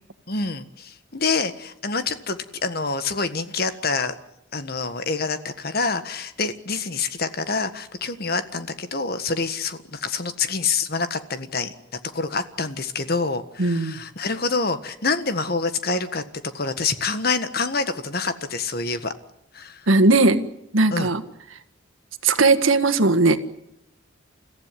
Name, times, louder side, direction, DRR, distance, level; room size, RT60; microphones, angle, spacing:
voice 1, 0.3-4.1 4.5-11.7 12.1-16.2 16.5-19.1 19.5-19.8 20.9-21.1, left 4 dB, 50° left, 11 dB, 1.6 m, -26 dB
voice 2, 13.6-14.0 19.9-20.4 20.7-21.2 22.2-23.4, right 3 dB, 90° right, 9 dB, 1.7 m, -18 dB
29.5 x 15.0 x 9.7 m, 0.83 s
head